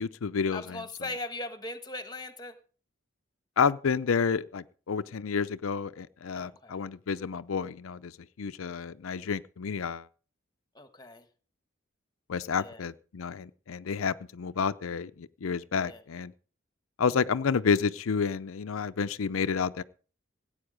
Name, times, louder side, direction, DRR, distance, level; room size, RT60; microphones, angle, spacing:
voice 1, 0.0-0.8 3.6-8.1 8.4-10.1 12.3-16.3 17.0-19.8, left 6 dB, 90° left, 0.5 m, -30 dB
voice 2, 0.5-2.6 6.4-6.8 10.7-11.3 12.5-12.8 15.9-16.0, left 2 dB, 20° left, 1.3 m, -39 dB
16.5 x 8.9 x 5.1 m
head